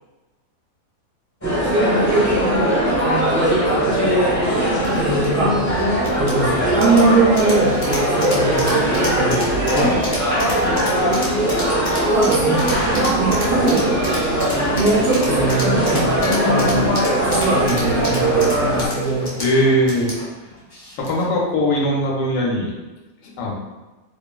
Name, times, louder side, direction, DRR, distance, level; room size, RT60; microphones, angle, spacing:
sound 1, 1.4-18.9, right 1 dB, 15° left, 0.7 m, -20 dB
voice 1, 1.6-4.6 5.0-5.6 6.2-9.4 12.1-13.9 14.7-16.9 17.2-19.3, right 2 dB, 60° right, -7 dB, 0.9 m, -22 dB
sound 2, 4.8-21.4, left 1 dB, 40° left, 0.3 m, -31 dB
voice 2, 19.4-20.1 21.0-22.7 23.4-23.6, equal, 65° left, -2 dB, 1.0 m, -20 dB
3.5 x 2.0 x 2.3 m, 1.2 s
omnidirectional pair, 1.5 m